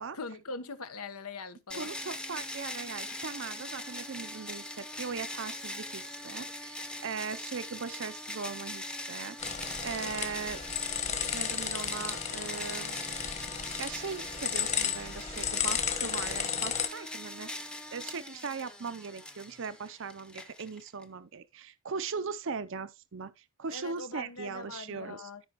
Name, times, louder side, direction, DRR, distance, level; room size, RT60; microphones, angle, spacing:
voice 1, 0.1-1.9 23.7-25.4, left 3 dB, 80° left, 1.1 m, -42 dB
sound 1, 1.7-21.0, left 1 dB, 5° left, 0.8 m, -41 dB
voice 2, 1.7-10.6 11.3-13.0 13.6-25.3, right 5 dB, 55° right, 0.6 m, -39 dB
sound 2, 9.4-16.9, left 7 dB, 30° left, 1.3 m, -34 dB
13.5 x 5.5 x 3.0 m
head